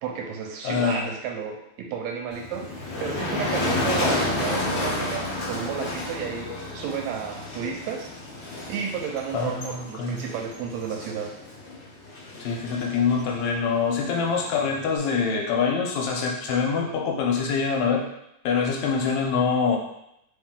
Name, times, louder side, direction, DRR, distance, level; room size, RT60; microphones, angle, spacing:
voice 1, 0.0-8.1 8.7-11.3, right 6 dB, 80° right, 2 dB, 1.7 m, -32 dB
voice 2, 0.6-1.1 9.3-10.3 12.4-18.1 18.4-19.8, left 5 dB, 75° left, 0 dB, 1.8 m, -25 dB
Motor vehicle (road), 2.3-15.0, left 2 dB, 55° left, 1.3 m, -31 dB
4.2 x 3.2 x 3.6 m, 0.81 s
omnidirectional pair, 3.5 m